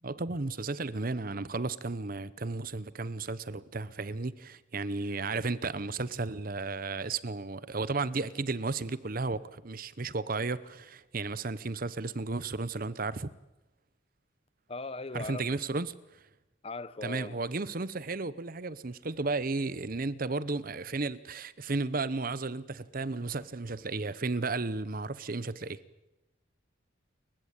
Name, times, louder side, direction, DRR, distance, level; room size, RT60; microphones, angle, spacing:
voice 1, 0.0-13.3 15.1-15.9 17.0-25.8, right 3 dB, 45° right, 0.8 m, -34 dB
voice 2, 14.7-15.4 16.6-17.4, left 3 dB, 30° left, 0.8 m, -38 dB
29.5 x 15.0 x 8.9 m
head